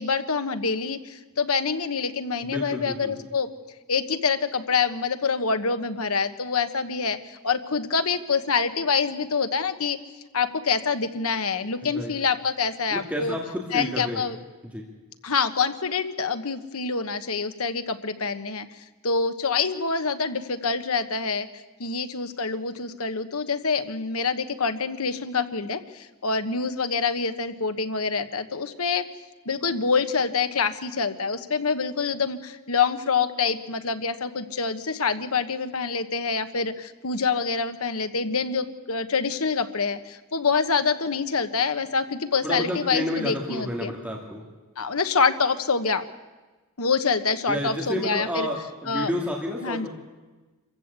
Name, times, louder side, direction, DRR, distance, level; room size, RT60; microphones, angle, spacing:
voice 1, 0.0-3.5 3.9-10.0 10.3-13.4 13.7-14.4 15.2-18.7 19.0-21.5 21.8-29.1 29.4-43.9 44.8-46.0 46.8-48.5 48.9-49.1 49.6-49.9, left 5 dB, 75° left, 10 dB, 1.3 m, -26 dB
voice 2, 2.4-3.2 11.8-12.1 12.9-14.2 14.6-14.9 42.4-44.4 47.5-49.9, equal, 5° right, -1 dB, 2.5 m, -30 dB
26.5 x 15.0 x 8.3 m, 1.2 s
head